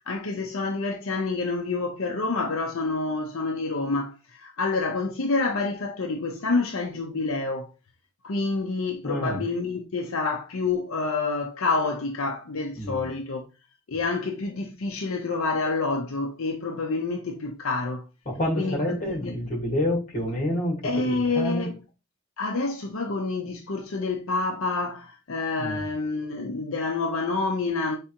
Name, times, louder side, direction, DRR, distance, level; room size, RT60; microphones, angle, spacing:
voice 1, 0.0-7.7 8.2-13.4 13.9-18.0 18.6-19.4 20.8-21.8 22.4-28.0, left 3 dB, 75° left, 0.7 m, -28 dB
voice 2, 9.0-9.5 12.7-13.0 18.3-20.8 21.0-21.7 25.6-25.8, left 1 dB, 35° left, 1.8 m, -28 dB
4.7 x 3.3 x 2.9 m
head